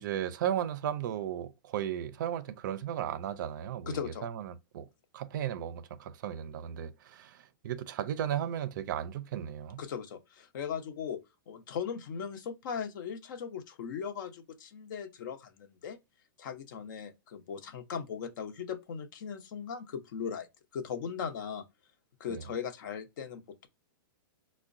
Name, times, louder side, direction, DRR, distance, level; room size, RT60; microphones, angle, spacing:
voice 1, 0.0-4.9 5.1-9.8 22.3-22.4, right 10 dB, 60° right, 0.4 m, -35 dB
voice 2, 3.9-4.3 9.8-11.2 11.5-16.0 16.4-20.5 20.7-21.6 22.2-23.7, left 7 dB, 60° left, 0.7 m, -38 dB
4.5 x 2.1 x 2.5 m
hypercardioid pair, 150°, 12 cm